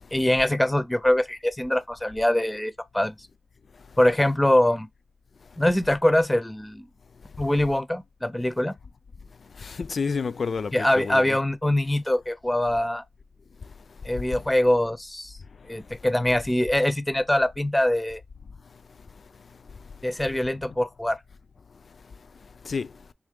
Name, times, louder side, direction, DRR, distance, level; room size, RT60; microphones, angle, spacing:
voice 1, 0.1-3.1 4.0-4.9 5.6-6.9 7.4-8.8 10.7-13.0 14.0-15.4 15.7-18.2 20.0-21.2, left 1 dB, 10° left, 0.4 m, -23 dB
voice 2, 9.6-11.4 22.6-22.9, left 5 dB, 70° left, 0.3 m, -29 dB
3.7 x 3.0 x 3.5 m
wide cardioid pair, 100°, 0 cm